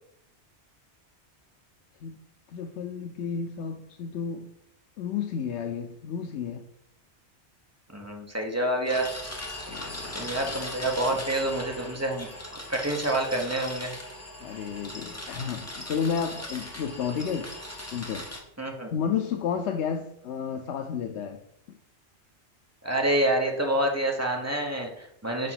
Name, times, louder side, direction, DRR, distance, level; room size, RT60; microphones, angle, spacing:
voice 1, 2.5-4.5 5.0-6.7 9.7-10.6 11.1-11.2 14.4-17.5 17.9-18.3 18.9-21.4, left 7 dB, 80° left, 5 dB, 0.9 m, -32 dB
voice 2, 7.9-9.1 9.7-13.9 18.6-18.9 22.8-25.5, right 1 dB, 15° right, 1 dB, 0.9 m, -28 dB
sound 1, 8.9-18.4, left 1 dB, 15° left, 1.0 m, -39 dB
5.1 x 4.9 x 5.7 m, 0.76 s
omnidirectional pair, 1.1 m